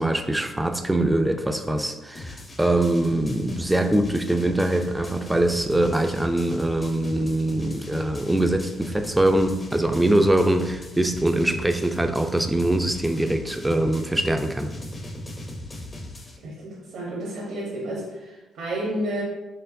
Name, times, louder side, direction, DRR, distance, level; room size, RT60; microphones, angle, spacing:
voice 1, 0.0-14.7, right 1 dB, 10° right, 0.3 m, -23 dB
sound 1, 2.1-16.4, left 2 dB, 35° left, 0.6 m, -39 dB
voice 2, 11.3-11.7 16.4-19.2, right 1 dB, 80° right, 1.0 m, -31 dB
4.5 x 2.9 x 2.6 m
cardioid pair, 90°, 0 cm